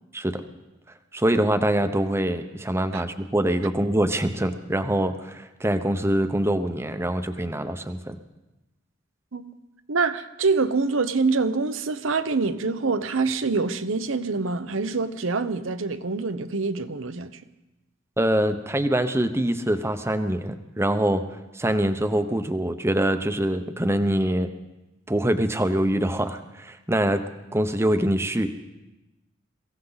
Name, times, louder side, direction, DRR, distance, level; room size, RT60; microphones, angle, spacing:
voice 1, 1.1-8.2 18.2-21.2 21.5-24.5 25.1-27.2 27.5-28.5, right 1 dB, 15° right, 0.8 m, -24 dB
voice 2, 9.9-17.3, right 4 dB, 90° right, 0.9 m, -25 dB
23.0 x 15.5 x 4.0 m
head